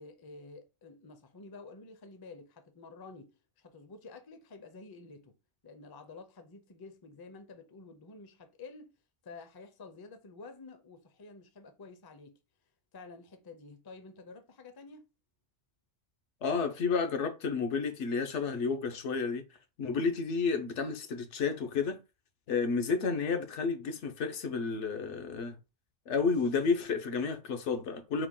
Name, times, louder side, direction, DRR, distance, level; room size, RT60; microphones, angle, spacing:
voice 1, 0.0-5.4 5.6-8.9 9.2-12.4 12.9-15.1, left 3 dB, 30° left, 0.4 m, -50 dB
voice 2, 16.4-19.5 19.8-22.0 22.5-25.6 26.1-28.3, left 5 dB, 80° left, 1.0 m, -31 dB
4.8 x 2.2 x 3.6 m
omnidirectional pair, 1.2 m